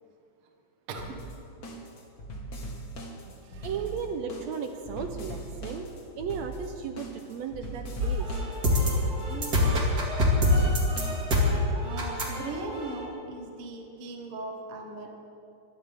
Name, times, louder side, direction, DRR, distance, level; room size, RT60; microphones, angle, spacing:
voice 1, 0.9-1.2 3.2-3.9 8.8-8.9 9.3-9.6 11.8-15.1, right 2 dB, 50° right, 1 dB, 2.1 m, -39 dB
sound 1, 1.0-11.7, right 1 dB, 40° left, 1.5 m, -41 dB
voice 2, 3.6-5.9 6.2-8.3, right 6 dB, 70° right, 6 dB, 1.7 m, -35 dB
sound 2, 8.0-13.0, left 1 dB, 30° right, 2.4 m, -25 dB
22.5 x 16.5 x 3.6 m, 2.7 s
omnidirectional pair, 3.7 m